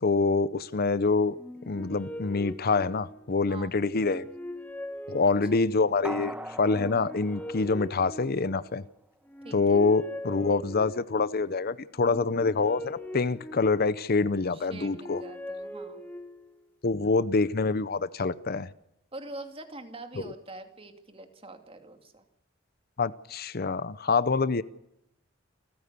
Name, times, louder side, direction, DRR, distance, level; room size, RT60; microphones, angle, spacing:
voice 1, 0.0-1.4 1.7-4.3 5.1-8.8 9.5-15.2 16.8-18.7 23.0-24.6, left 4 dB, 50° left, 0.7 m, -26 dB
sound 1, 1.3-3.4 3.9-5.9 6.6-8.8 9.2-11.3 12.0-14.1 14.6-16.6, left 1 dB, 10° left, 1.4 m, -41 dB
voice 2, 5.2-5.6 9.4-9.8 14.5-16.0 19.1-22.2, right 2 dB, 30° right, 2.6 m, -44 dB
sound 2, 6.0-8.6 9.0-9.1, right 1 dB, 10° right, 1.1 m, -41 dB
28.5 x 14.5 x 6.8 m
head